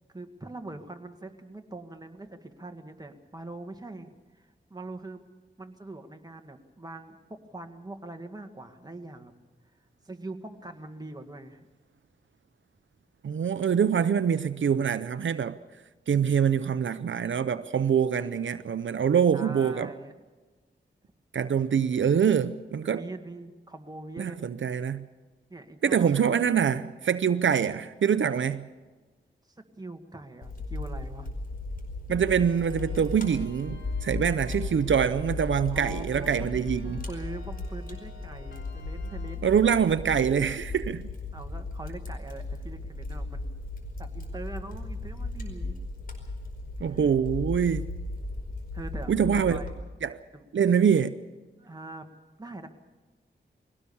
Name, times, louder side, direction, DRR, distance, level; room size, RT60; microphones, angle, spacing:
voice 1, 0.1-5.2 5.6-9.3 10.0-11.7 19.3-20.1 22.8-24.4 25.5-26.1 29.6-31.3 35.7-39.5 41.3-43.5 44.0-45.8 46.8-47.0 48.7-49.7 50.3-50.5 51.6-52.1 52.4-52.7, right 2 dB, 20° right, 1.9 m, -42 dB
voice 2, 13.2-15.6 16.1-19.9 21.3-23.0 24.2-25.1 25.8-28.7 32.1-37.0 39.4-41.1 46.8-47.9 49.1-49.6 50.0-50.2 50.5-51.2, right 7 dB, 75° right, 0.6 m, -25 dB
Fire, 30.4-49.7, left 2 dB, 45° left, 4.9 m, -36 dB
sound 1, 32.5-39.4, left 3 dB, 85° left, 3.9 m, -52 dB
22.0 x 17.5 x 7.1 m
wide cardioid pair, 75°, 20 cm